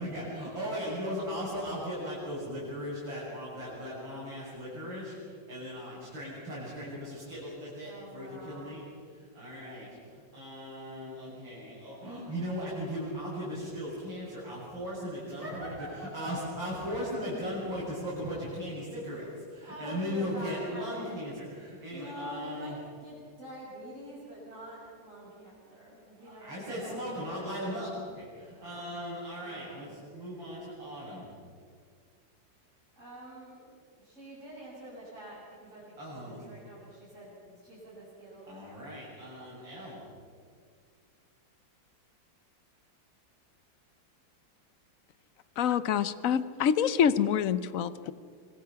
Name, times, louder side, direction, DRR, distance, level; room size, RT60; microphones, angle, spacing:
voice 1, 0.0-8.8 9.1-15.7 16.1-22.8 26.2-31.3 36.0-36.4 38.5-40.0, equal, 75° right, -9 dB, 8.1 m, -38 dB
voice 2, 7.8-8.9 15.2-17.0 17.3-17.5 19.6-21.3 21.9-27.5 28.5-29.0 29.4-29.9 32.9-33.7 34.0-38.6, right 1 dB, 40° right, -10 dB, 8.3 m, -46 dB
voice 3, 45.6-48.1, left 8 dB, 60° left, 14 dB, 0.9 m, -26 dB
26.0 x 24.0 x 5.8 m, 2.1 s
omnidirectional pair, 2.1 m